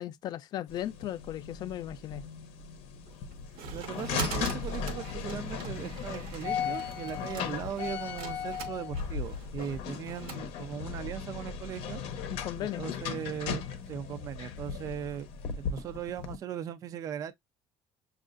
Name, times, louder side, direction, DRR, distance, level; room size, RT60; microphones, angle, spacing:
voice 1, 0.0-2.2 12.3-12.9, left 12 dB, 45° left, 0.3 m, -36 dB
sound 1, 0.7-16.4, left 7 dB, 75° left, 0.7 m, -37 dB
sound 2, 3.1-10.4, right 5 dB, 70° right, 0.9 m, -41 dB
voice 2, 3.7-12.0 12.8-13.6 13.9-15.3 15.6-17.3, right 9 dB, 35° right, 0.4 m, -38 dB
6.4 x 2.4 x 2.4 m
cardioid pair, 165°, 10 cm